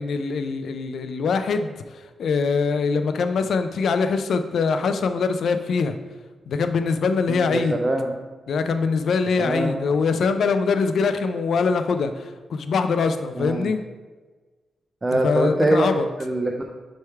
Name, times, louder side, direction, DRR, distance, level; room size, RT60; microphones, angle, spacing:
voice 1, 0.0-1.7 2.2-5.9 6.5-7.7 8.5-13.8 15.2-16.1, left 5 dB, 60° left, 9 dB, 0.4 m, -23 dB
voice 2, 7.3-8.1 9.4-9.7 13.4-13.7 15.0-15.9 16.2-16.7, right 1 dB, 20° right, 2 dB, 0.4 m, -23 dB
6.3 x 3.5 x 4.5 m, 1.3 s
wide cardioid pair, 155°, 0 cm